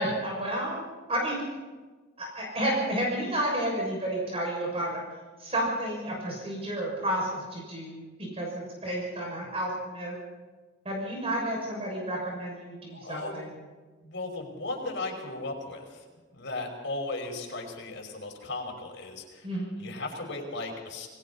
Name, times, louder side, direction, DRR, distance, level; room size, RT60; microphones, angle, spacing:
voice 1, 0.0-1.4 2.2-5.0 5.4-10.1 10.8-13.5 19.4-19.7, right 1 dB, 30° right, -2 dB, 6.6 m, -31 dB
voice 2, 12.9-13.5 14.0-15.8 16.3-19.5 19.8-21.1, left 2 dB, 65° left, 2 dB, 5.4 m, -36 dB
29.5 x 20.5 x 4.3 m, 1.3 s
head